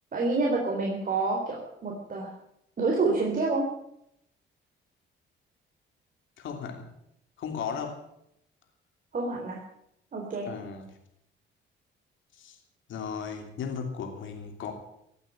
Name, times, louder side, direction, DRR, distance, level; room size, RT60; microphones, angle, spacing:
voice 1, 0.1-2.3 2.8-3.7 9.1-9.6 10.1-10.5, right 3 dB, 45° right, -1 dB, 3.9 m, -28 dB
voice 2, 6.4-6.9 7.4-8.0 10.5-10.9 12.3-12.6 12.9-14.7, left 6 dB, 75° left, 4 dB, 3.1 m, -36 dB
16.5 x 8.9 x 9.1 m, 0.75 s
cardioid pair, 90°, 20 cm